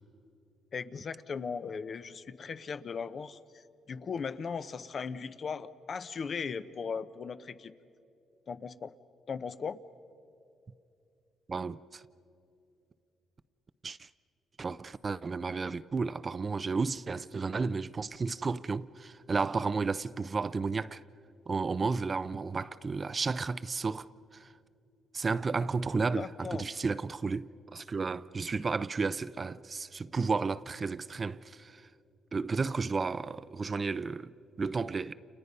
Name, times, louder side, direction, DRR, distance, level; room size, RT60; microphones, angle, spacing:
voice 1, 0.7-3.4 3.9-7.7 8.5-8.9 9.3-9.8 26.1-26.7, left 5 dB, 45° left, 0.8 m, -37 dB
voice 2, 11.5-12.0 13.8-14.1 14.6-21.0 21.5-24.1 24.3-24.5 25.1-31.8 32.3-34.3 34.6-35.1, right 4 dB, 35° right, 0.5 m, -32 dB
30.0 x 29.5 x 5.5 m
cardioid pair, 90°, 0 cm